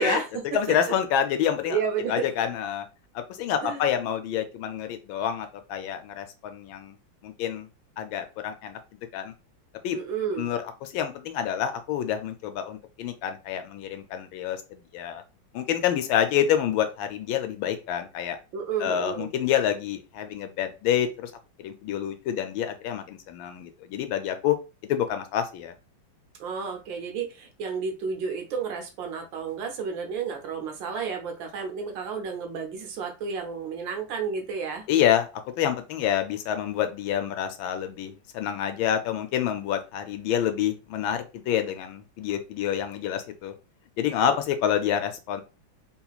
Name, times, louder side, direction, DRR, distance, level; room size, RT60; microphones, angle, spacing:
voice 1, 0.0-0.7 1.7-2.3 3.6-3.9 9.9-10.5 18.5-19.3 26.4-34.9 44.2-44.4, right 6 dB, 70° right, 4 dB, 1.5 m, -31 dB
voice 2, 0.5-1.8 2.1-2.8 3.1-7.0 7.2-7.7 8.0-8.8 9.1-9.3 9.8-10.0 10.4-15.2 15.5-18.4 18.8-21.3 21.6-24.6 24.9-25.7 34.9-35.3 35.6-43.5 44.0-45.4, left 9 dB, 80° left, 7 dB, 1.4 m, -27 dB
3.7 x 2.8 x 2.4 m, 0.29 s
omnidirectional pair, 2.2 m